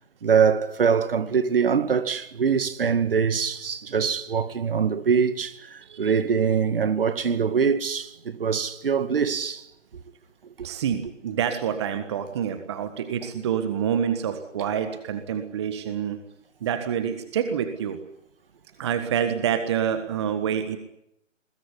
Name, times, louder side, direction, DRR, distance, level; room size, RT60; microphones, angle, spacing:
voice 1, 0.2-9.6 10.6-10.7, right 6 dB, 50° right, 2.0 m, -23 dB
voice 2, 5.8-6.2 10.6-16.2 16.6-18.0 18.8-20.8, right 8 dB, 20° right, 1.5 m, -27 dB
24.0 x 21.0 x 9.9 m
figure-of-eight pair, 160°, 37 cm